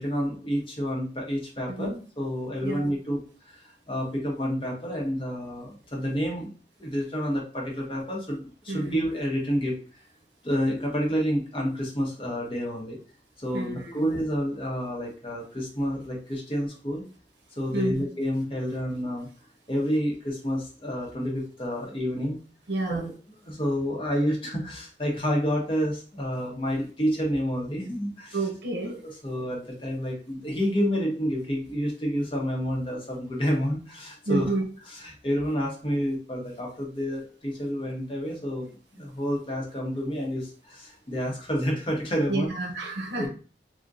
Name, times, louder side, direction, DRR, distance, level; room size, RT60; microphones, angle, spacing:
voice 1, 0.0-3.2 3.4-6.5 6.8-9.8 10.4-13.0 13.4-17.0 17.6-19.3 19.7-22.4 22.9-23.1 23.4-28.5 28.8-34.5 34.9-42.5 43.2-43.3, equal, 30° left, -1 dB, 0.8 m, -29 dB
voice 2, 8.7-9.0 13.5-14.1 17.7-18.0 22.7-23.1 28.3-28.9 34.3-34.6 42.3-43.3, right 2 dB, 85° right, 2 dB, 0.7 m, -29 dB
3.5 x 2.1 x 2.5 m, 0.38 s
head